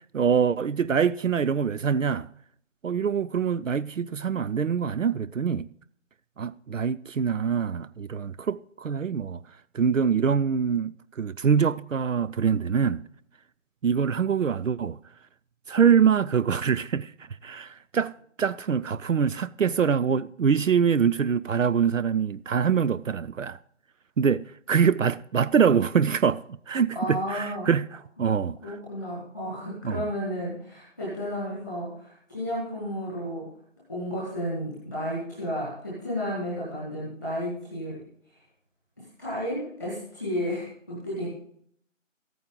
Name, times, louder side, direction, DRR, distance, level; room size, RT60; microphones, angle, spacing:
voice 1, 0.1-2.3 2.8-5.7 6.4-9.4 9.7-13.0 13.8-15.0 15.7-17.1 17.4-23.6 24.2-27.9 28.2-28.8 29.8-30.1, right 7 dB, 75° right, 0.5 m, -24 dB
voice 2, 26.9-27.7 28.3-33.5 33.9-38.1 39.0-41.3, equal, 5° right, 1.3 m, -32 dB
14.5 x 9.3 x 3.8 m
figure-of-eight pair, 170°, 39 cm